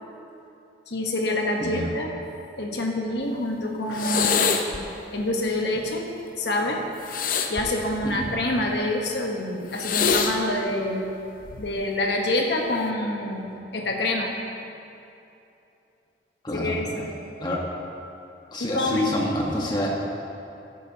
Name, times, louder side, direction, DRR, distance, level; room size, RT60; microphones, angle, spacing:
voice 1, 0.9-2.1 2.6-4.8 5.1-6.1 6.4-6.8 7.5-11.0 11.6-14.3 16.5-17.1 18.6-19.1, left 1 dB, 70° left, 1 dB, 1.2 m, -27 dB
sound 1, 3.9-4.8 7.0-8.5 9.7-10.4 11.4-11.8, left 5 dB, 50° left, 0.6 m, -25 dB
voice 2, 16.4-17.0 17.4-17.6 18.5-20.0, left 1 dB, 25° left, -3 dB, 1.3 m, -27 dB
13.0 x 9.0 x 2.9 m, 2.8 s
head